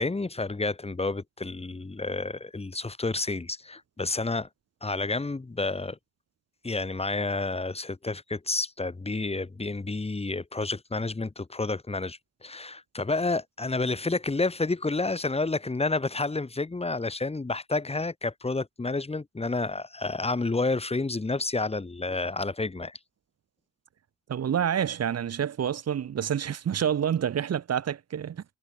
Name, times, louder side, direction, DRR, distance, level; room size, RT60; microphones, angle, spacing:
voice 1, 0.0-4.5 4.8-6.0 6.6-23.0, left 3 dB, 20° left, 3.8 m, -30 dB
voice 2, 24.3-28.4, right 9 dB, 55° right, 3.0 m, -28 dB
cardioid pair, 90°, 30 cm